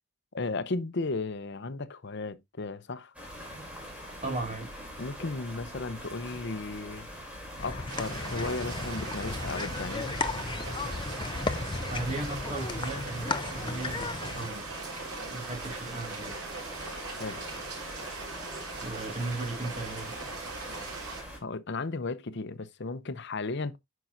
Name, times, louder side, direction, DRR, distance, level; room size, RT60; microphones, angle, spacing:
voice 1, 0.3-3.1 5.0-7.1 7.6-10.2 17.2-17.4 21.4-23.7, left 3 dB, 50° left, 0.7 m, -35 dB
sound 1, 3.1-21.4, equal, 5° right, 3.2 m, -43 dB
voice 2, 4.2-4.7 11.9-14.7 15.2-16.4 18.8-20.2, right 2 dB, 30° right, 2.2 m, -36 dB
sound 2, 7.6-14.5, left 3 dB, 20° left, 0.4 m, -35 dB
sound 3, 7.9-21.2, right 3 dB, 90° right, 4.0 m, -40 dB
9.3 x 5.9 x 2.6 m
head